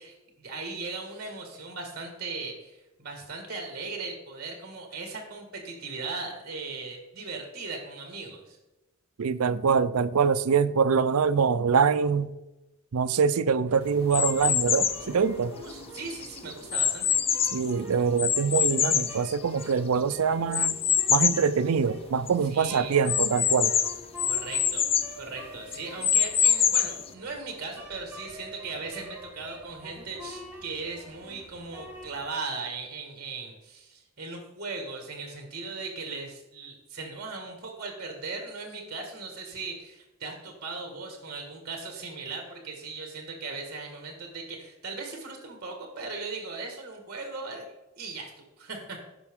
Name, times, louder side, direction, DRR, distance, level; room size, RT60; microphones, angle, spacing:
voice 1, 0.0-8.6 15.5-17.2 22.4-23.0 24.2-47.6 48.0-48.3 48.6-49.0, right 3 dB, 45° right, 1.8 m, -38 dB
voice 2, 9.2-12.3 12.9-15.6 17.5-20.8 21.1-23.7, right 6 dB, 80° right, 0.5 m, -24 dB
sound 1, 13.6-32.3, equal, 10° right, 1.5 m, -46 dB
sound 2, 14.1-15.1 15.7-17.7 18.2-19.9 20.5-21.5 21.9-22.0 22.3-22.4 23.1-25.1 25.7-27.1, left 8 dB, 25° left, 0.4 m, -25 dB
15.0 x 5.9 x 3.7 m
head